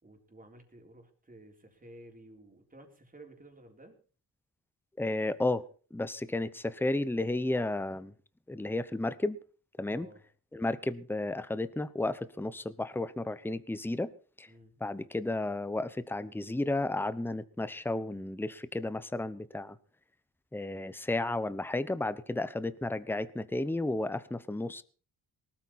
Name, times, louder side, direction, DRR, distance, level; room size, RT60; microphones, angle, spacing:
voice 1, 0.0-4.0 9.9-10.2 14.5-14.7, right 1 dB, 20° right, 3 dB, 3.8 m, -53 dB
voice 2, 5.0-5.6 5.9-8.1 8.5-9.4 9.8-10.1 10.5-14.1 14.4-14.5 14.8-19.8 20.5-24.8, left 2 dB, 5° left, 15 dB, 0.9 m, -33 dB
19.0 x 13.5 x 4.3 m, 0.39 s
cardioid pair, 95°, 40 cm